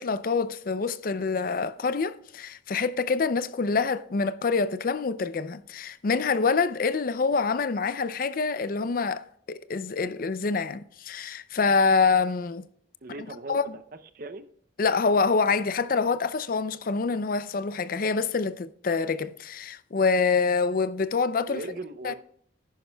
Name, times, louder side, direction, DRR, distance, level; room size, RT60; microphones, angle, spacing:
voice 1, 0.0-12.6 13.5-13.8 14.8-21.6 22.0-22.1, left 4 dB, 45° left, 0.4 m, -26 dB
voice 2, 13.0-13.8 14.1-14.5 21.5-22.1, right 2 dB, 50° right, 0.6 m, -38 dB
10.5 x 10.5 x 2.3 m
head